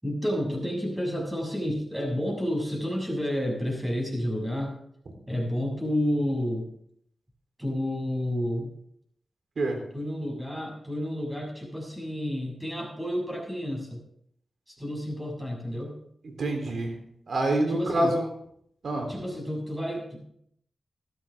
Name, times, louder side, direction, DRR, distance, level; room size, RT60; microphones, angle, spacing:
voice 1, 0.0-4.8 5.3-6.7 7.6-8.8 9.9-14.0 14.7-16.0 17.7-18.1 19.1-20.2, equal, 5° right, -1 dB, 6.6 m, -30 dB
voice 2, 16.2-16.9 17.3-18.2 18.8-19.1, right 1 dB, 70° right, 3 dB, 3.5 m, -26 dB
14.5 x 13.0 x 3.6 m, 0.70 s
cardioid pair, 65°, 0 cm